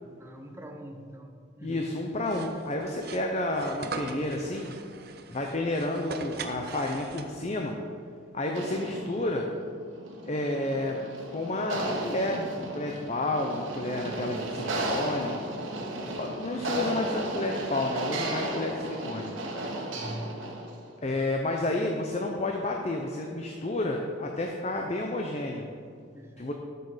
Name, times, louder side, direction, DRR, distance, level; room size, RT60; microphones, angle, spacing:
voice 1, 0.2-1.9 15.7-16.2 19.9-20.7 26.1-26.5, equal, 10° right, 4 dB, 0.7 m, -43 dB
voice 2, 1.6-4.7 5.3-7.8 8.3-9.5 10.2-11.0 11.3-15.4 16.2-19.3 21.0-25.7 26.4-26.5, left 2 dB, 35° left, 2 dB, 0.6 m, -30 dB
sound 1, 2.2-7.6, right 4 dB, 50° right, 0.7 m, -41 dB
sound 2, 8.5-20.8, right 1 dB, 80° right, 1.6 m, -34 dB
12.0 x 6.9 x 5.0 m, 2.2 s
head